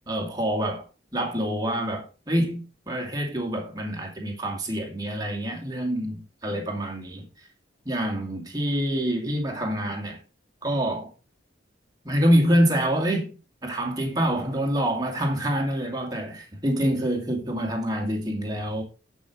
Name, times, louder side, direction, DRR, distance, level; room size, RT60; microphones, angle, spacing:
voice 1, 0.1-0.8 1.1-7.2 7.9-10.2 10.6-11.1 12.0-13.3 13.6-18.8, equal, 20° right, 2.4 m, -26 dB
10.5 x 5.7 x 4.8 m
head